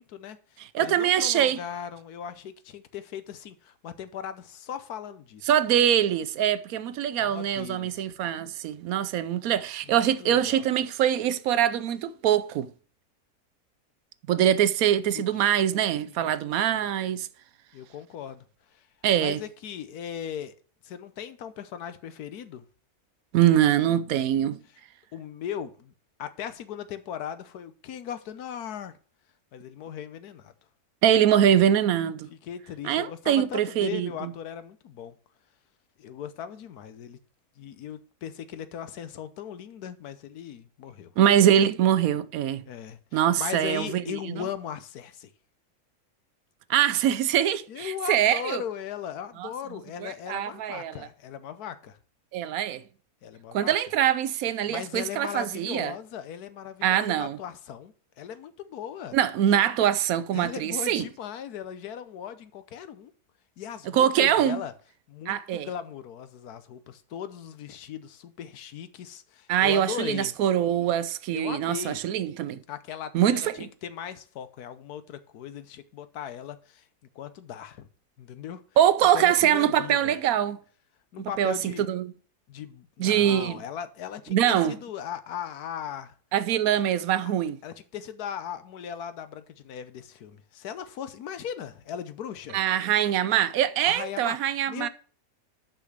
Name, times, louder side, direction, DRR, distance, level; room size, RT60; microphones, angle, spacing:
voice 1, 0.0-5.5 7.2-8.1 9.9-10.6 15.1-15.5 16.2-16.4 16.6-16.8 17.7-18.5 18.7-18.9 19.2-20.5 20.8-22.6 25.1-25.9 26.2-29.0 29.5-30.5 32.3-35.1 36.0-37.2 37.6-41.1 42.7-45.3 47.7-52.0 53.2-53.7 54.7-59.2 60.3-63.1 63.6-64.7 65.1-70.3 71.3-72.0 72.7-76.8 77.1-77.9 78.2-78.6 79.1-80.1 81.1-81.9 82.5-86.1 87.6-92.6 93.8-94.9, left 9 dB, 80° left, 1.3 m, -38 dB
voice 2, 0.6-1.6 5.5-12.7 14.3-17.3 19.0-19.4 23.3-24.6 31.0-32.3 32.8-34.3 41.2-42.6 43.1-44.4 46.7-48.6 49.4-49.5 50.0-51.1 52.3-52.8 53.5-55.9 56.8-57.4 59.1-61.0 63.9-64.6 65.3-65.7 69.5-72.6 73.1-73.7 78.8-80.6 81.2-82.1 83.0-83.6 84.3-84.8 86.3-87.6 92.5-94.9, right 10 dB, 70° right, 1.0 m, -23 dB
6.2 x 5.9 x 6.6 m
omnidirectional pair, 1.6 m